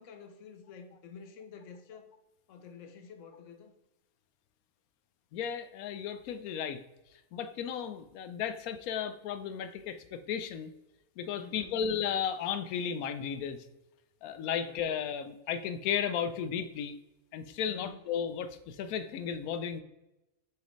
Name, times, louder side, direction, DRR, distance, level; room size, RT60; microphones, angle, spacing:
voice 1, 0.0-2.1 2.5-3.7 11.4-11.8 14.6-14.8 17.7-18.0, left 6 dB, 65° left, 1.1 m, -50 dB
voice 2, 5.3-6.8 7.3-10.7 11.2-13.7 14.2-17.0 17.3-19.8, left 8 dB, 90° left, 1.1 m, -34 dB
6.6 x 4.8 x 3.1 m
omnidirectional pair, 1.5 m